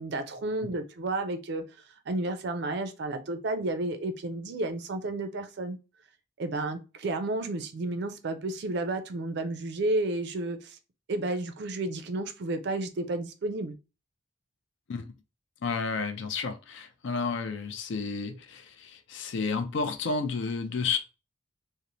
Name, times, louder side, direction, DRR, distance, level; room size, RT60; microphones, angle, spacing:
voice 1, 0.0-1.6 2.1-5.8 6.4-10.8 11.1-13.7, right 2 dB, 50° right, 0.4 m, -31 dB
voice 2, 15.6-21.0, left 4 dB, 60° left, 0.4 m, -31 dB
3.0 x 2.0 x 2.6 m
head